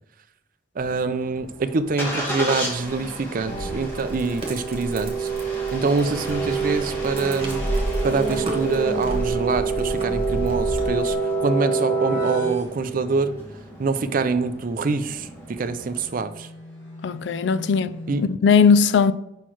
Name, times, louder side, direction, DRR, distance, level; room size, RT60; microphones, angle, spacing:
Engine starting, 0.8-16.1, right 1 dB, 15° left, 1.9 m, -35 dB
voice 1, 0.8-5.3 5.7-7.7 8.0-11.2 11.4-13.4 13.8-16.5 18.1-18.2, right 4 dB, 50° right, 0.5 m, -25 dB
sound 1, 2.9-11.1, equal, 30° right, 1.7 m, -32 dB
sound 2, 3.4-13.4 15.6-18.2, right 5 dB, 85° left, 1.7 m, -28 dB
voice 2, 17.0-17.9 18.4-19.1, left 6 dB, 70° left, 0.4 m, -17 dB
5.6 x 4.5 x 4.4 m
head